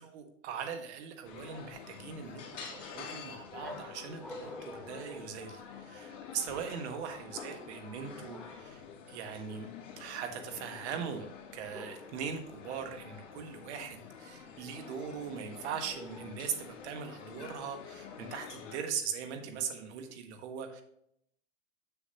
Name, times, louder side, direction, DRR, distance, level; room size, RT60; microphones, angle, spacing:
voice 1, 0.0-9.7 10.0-20.8, right 7 dB, 60° right, 5 dB, 1.5 m, -40 dB
sound 1, 1.2-18.8, left 6 dB, 65° left, 2.5 m, -48 dB
sound 2, 3.6-6.1 7.3-7.9 8.3-8.8 11.7-12.4 15.9-16.6, left 2 dB, ahead, 0.6 m, -49 dB
7.1 x 6.9 x 2.9 m, 0.73 s
hypercardioid pair, 110°, 38 cm